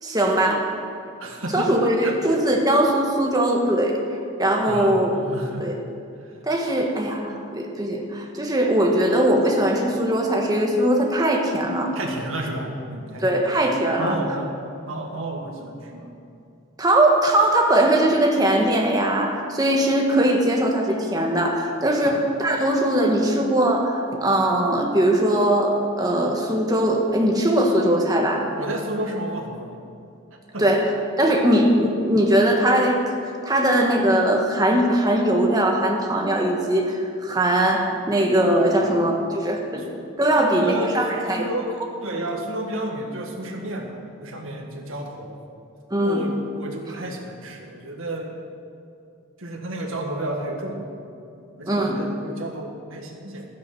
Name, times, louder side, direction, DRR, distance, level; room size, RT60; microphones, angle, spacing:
voice 1, 0.0-0.7 1.5-4.0 4.4-5.1 5.6-5.8 6.4-11.9 13.2-14.2 16.8-28.5 30.6-30.9 31.2-39.8 40.2-41.5 45.9-46.2 51.7-52.0, right 1 dB, 20° right, 1 dB, 1.4 m, -20 dB
voice 2, 1.2-1.7 2.0-2.2 4.7-5.7 11.9-13.3 14.0-14.5 14.9-16.1 22.0-22.2 28.6-29.8 30.5-30.7 31.5-31.6 38.8-39.0 40.4-41.0 41.4-41.7 42.0-45.4 46.0-48.4 49.4-50.9 51.6-53.5, right 1 dB, 80° right, 1 dB, 1.8 m, -31 dB
13.0 x 9.5 x 6.0 m, 2.5 s
head